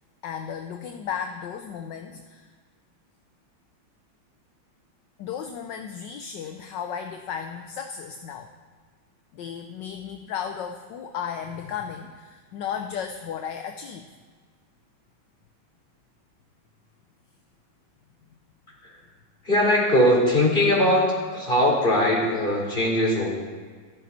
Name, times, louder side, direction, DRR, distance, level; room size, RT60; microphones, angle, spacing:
voice 1, 0.2-2.5 5.2-8.5 9.3-14.0, left 8 dB, 70° left, 5 dB, 1.3 m, -34 dB
voice 2, 19.4-21.1 21.3-23.3, left 1 dB, 25° left, -3 dB, 4.2 m, -20 dB
14.5 x 14.5 x 4.3 m, 1.5 s
omnidirectional pair, 2.1 m